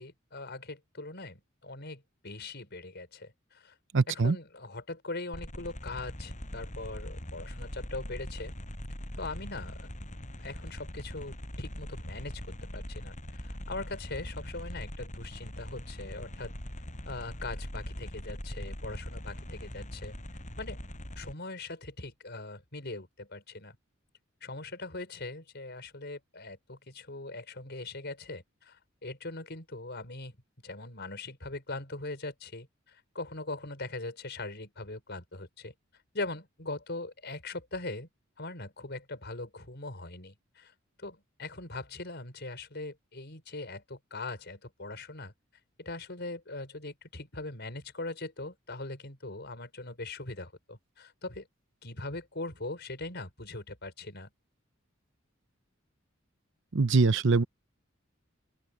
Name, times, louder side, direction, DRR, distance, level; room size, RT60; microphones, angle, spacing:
voice 1, 0.0-3.7 4.1-8.5 9.2-9.9 10.4-16.5 17.1-20.2 20.6-20.8 21.2-23.8 24.4-30.3 30.6-35.7 36.1-38.1 38.4-40.7 41.0-45.3 45.8-51.5 51.8-54.3, left 2 dB, 55° left, 5.4 m, -41 dB
voice 2, 3.9-4.3 56.7-57.4, right 4 dB, 65° right, 0.8 m, -23 dB
sound 1, 5.3-21.3, equal, 40° left, 8.0 m, -41 dB
open air
head